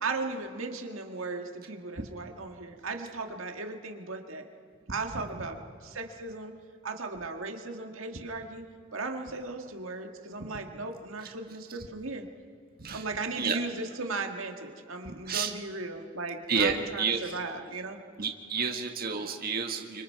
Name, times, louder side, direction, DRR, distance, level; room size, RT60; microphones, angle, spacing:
voice 1, 0.0-4.4 4.9-6.5 6.8-8.6 8.9-12.3 12.9-18.0 18.6-18.7, right 3 dB, 90° right, 4 dB, 1.8 m, -37 dB
voice 2, 16.5-17.2 18.2-20.0, right 5 dB, 50° right, 3 dB, 1.5 m, -29 dB
29.0 x 25.0 x 4.7 m, 2.4 s
head